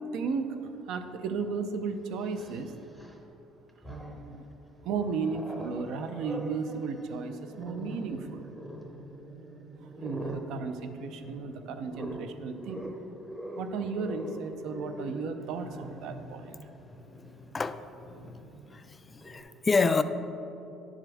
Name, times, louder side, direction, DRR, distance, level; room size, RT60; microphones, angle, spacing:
voice 1, 0.1-0.6 0.9-2.7 3.9-4.4 4.8-8.5 9.8-12.9 13.6-16.6, right 5 dB, 65° right, 8 dB, 0.6 m, -34 dB
Growling, 1.2-1.3 2.2-3.3 3.7-4.4 4.8-19.4, equal, 5° right, 0.7 m, -43 dB
voice 2, 17.5-17.9 18.3-18.4 18.7-20.0, left 4 dB, 20° left, 11 dB, 0.3 m, -28 dB
10.0 x 7.2 x 3.5 m, 3.0 s
cardioid pair, 140°, 0 cm